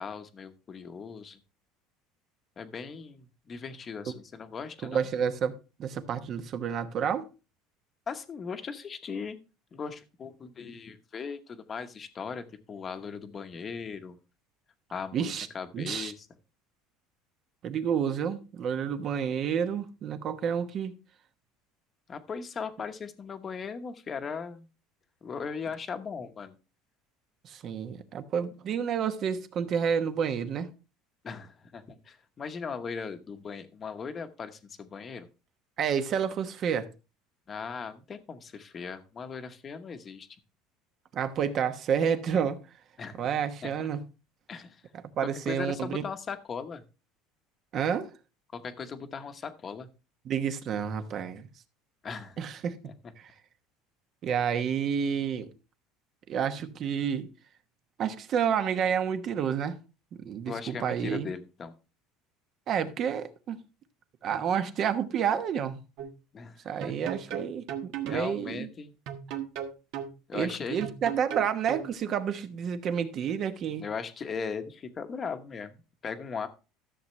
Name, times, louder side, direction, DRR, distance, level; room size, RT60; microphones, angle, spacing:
voice 1, 0.0-1.4 2.6-5.1 8.1-9.4 9.7-14.2 14.9-16.3 22.1-24.7 25.2-26.5 31.2-35.3 37.5-40.3 43.0-43.2 43.6-43.7 44.5-44.8 45.5-46.8 48.5-49.9 52.0-52.4 52.8-52.9 60.5-61.7 66.3-66.9 68.1-68.9 70.3-70.9 73.8-76.5, left 5 dB, 25° left, 1.1 m, -38 dB
voice 2, 4.8-7.3 15.1-15.5 15.7-16.1 17.6-21.0 27.4-30.7 35.8-36.8 41.1-42.6 43.2-44.0 45.2-46.0 47.7-48.1 50.2-51.5 52.4-52.8 53.2-53.3 54.2-55.5 56.3-57.3 58.0-59.8 60.2-61.3 62.7-63.6 64.2-65.8 66.6-68.7 70.3-73.9, right 7 dB, 40° right, 1.0 m, -29 dB
sound 1, 66.0-66.1 66.8-68.3 69.1-70.1 70.8-71.9, right 9 dB, 65° right, 1.5 m, -36 dB
14.0 x 7.2 x 3.2 m
cardioid pair, 145°, 0 cm